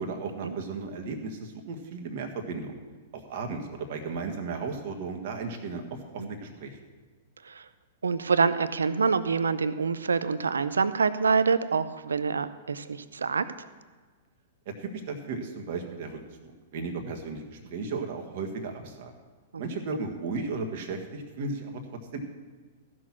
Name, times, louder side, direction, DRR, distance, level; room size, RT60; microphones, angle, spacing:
voice 1, 0.0-2.8 3.1-6.8 14.6-19.1 19.6-21.8 22.1-22.2, right 4 dB, 55° right, 3 dB, 1.6 m, -35 dB
voice 2, 8.0-13.5 19.5-19.6, right 5 dB, 80° right, 13 dB, 0.5 m, -26 dB
14.5 x 6.3 x 6.0 m, 1.4 s
figure-of-eight pair, 105°, 0 cm